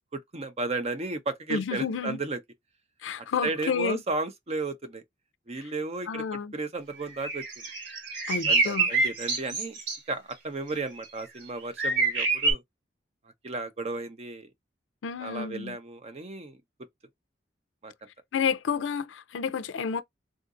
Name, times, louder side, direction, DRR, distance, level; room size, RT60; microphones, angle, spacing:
voice 1, 0.1-2.4 3.2-5.0 5.5-6.2 6.5-7.6 8.3-9.8 10.1-12.6 13.4-14.5 15.2-16.6 17.8-18.1, right 3 dB, 35° right, 0.6 m, -34 dB
voice 2, 1.5-2.2 3.0-4.0 6.1-6.5 8.3-8.9 15.0-15.8 18.3-20.0, left 6 dB, 85° left, 0.4 m, -30 dB
sound 1, 7.1-10.0 11.0-11.2 11.8-12.5, right 3 dB, 70° right, 1.3 m, -26 dB
3.7 x 2.5 x 2.5 m
head